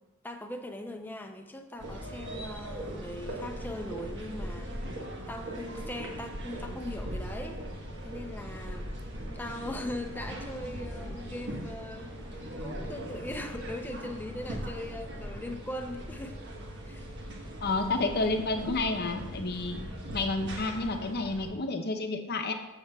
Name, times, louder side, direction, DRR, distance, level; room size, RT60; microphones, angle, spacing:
voice 1, 0.2-4.7 5.3-9.0 9.3-16.4 16.8-17.0, left 1 dB, 10° left, 5 dB, 0.6 m, -40 dB
sound 1, 1.8-21.5, equal, 55° right, 1.3 m, -39 dB
voice 2, 17.6-19.8 20.1-22.5, left 3 dB, 45° left, 5 dB, 0.8 m, -30 dB
14.0 x 6.6 x 2.4 m, 1.1 s
head